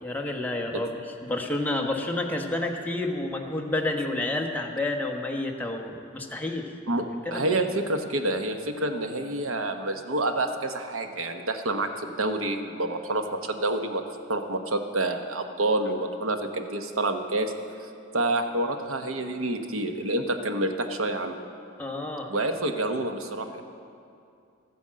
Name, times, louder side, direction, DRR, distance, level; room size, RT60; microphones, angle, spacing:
voice 1, 0.0-0.9 1.2-6.7 7.2-7.4 21.8-22.3, left 2 dB, 10° left, 1 dB, 1.1 m, -29 dB
voice 2, 6.9-14.0 14.3-17.5 18.1-21.4 22.3-23.6, right 2 dB, 90° right, 6 dB, 1.0 m, -28 dB
13.0 x 9.4 x 7.5 m, 2.5 s
head